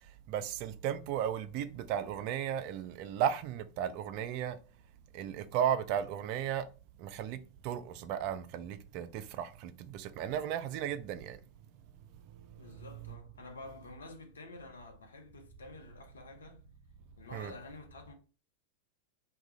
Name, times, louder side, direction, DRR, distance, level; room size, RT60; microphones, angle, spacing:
voice 1, 0.3-4.6 5.1-6.7 7.0-11.4 13.0-13.1 17.3-17.5, right 9 dB, 45° right, 0.3 m, -35 dB
voice 2, 12.6-16.7 17.2-18.1, left 3 dB, 70° left, 0.7 m, -49 dB
2.4 x 2.2 x 4.0 m
figure-of-eight pair, 90°, 0 cm